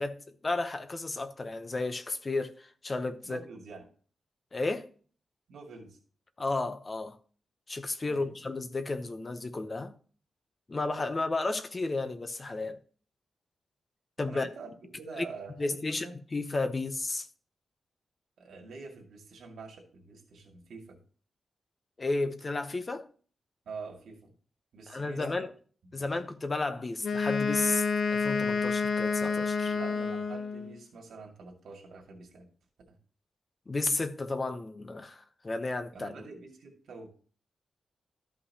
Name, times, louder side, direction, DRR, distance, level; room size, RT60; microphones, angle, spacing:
voice 1, 0.0-3.4 4.5-4.9 6.4-7.2 7.7-9.9 10.7-12.8 14.2-14.5 15.2-15.3 15.6-16.1 16.3-17.3 22.0-23.1 24.9-25.5 25.9-27.8 28.1-29.7 33.7-36.1, left 3 dB, 25° left, 0.7 m, -33 dB
voice 2, 3.2-3.9 5.5-6.0 8.1-8.3 14.3-16.1 18.4-21.0 23.7-24.3 24.7-25.4 25.9-26.1 29.6-32.5 32.9-33.0 35.9-37.1, right 4 dB, 90° right, 2.1 m, -46 dB
Wind instrument woodwind instrument, 27.0-30.7, left 5 dB, 65° left, 0.8 m, -29 dB
13.0 x 5.6 x 2.8 m
wide cardioid pair, 170°, 0 cm